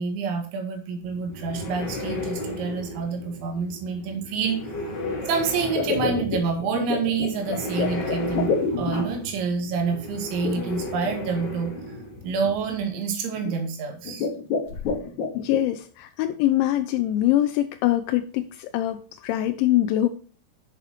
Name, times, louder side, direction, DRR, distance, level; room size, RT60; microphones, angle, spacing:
voice 1, 0.0-4.8 5.3-11.7 12.2-14.3, right 5 dB, 75° right, 3 dB, 4.3 m, -28 dB
sound 1, 1.0-12.8, left 1 dB, 35° left, 1.7 m, -34 dB
sound 2, 5.7-9.3 10.4-11.1 11.8-11.9 12.4-12.7 13.3-13.7 14.0-15.6, left 5 dB, 60° left, 2.1 m, -28 dB
voice 2, 15.3-20.1, left 14 dB, 85° left, 8 dB, 2.9 m, -23 dB
11.0 x 6.9 x 3.1 m, 0.41 s
omnidirectional pair, 5.5 m